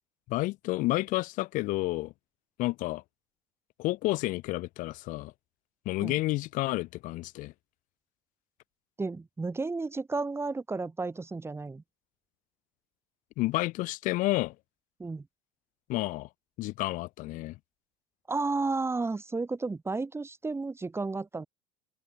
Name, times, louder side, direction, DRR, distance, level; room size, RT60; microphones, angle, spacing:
voice 1, 0.3-2.1 2.6-3.0 3.8-5.3 5.8-7.5 13.4-14.5 15.9-16.3 16.6-17.6, left 19 dB, 65° left, 6.2 m, -30 dB
voice 2, 9.0-11.8 15.0-15.3 18.3-21.5, right 3 dB, 15° right, 3.5 m, -32 dB
open air
supercardioid pair, 90°, 15 cm